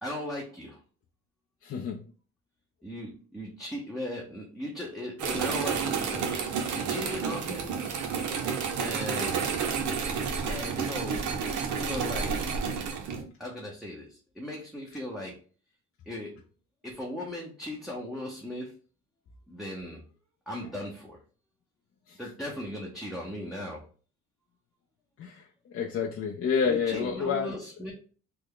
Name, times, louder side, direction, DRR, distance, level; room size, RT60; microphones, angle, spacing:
voice 1, 0.0-0.8 2.8-8.0 8.8-9.4 10.5-11.3 11.8-12.6 13.4-15.4 16.1-16.4 16.8-18.8 19.5-20.0 20.5-21.2 22.2-23.8 26.6-27.9, left 1 dB, ahead, -3 dB, 0.7 m, -37 dB
voice 2, 1.6-2.0 25.2-25.4 25.7-27.5, left 6 dB, 50° left, 0 dB, 0.5 m, -28 dB
sound 1, 5.2-13.2, right 6 dB, 75° right, 0.7 m, -30 dB
3.4 x 2.0 x 3.7 m, 0.40 s
cardioid pair, 90°, 30 cm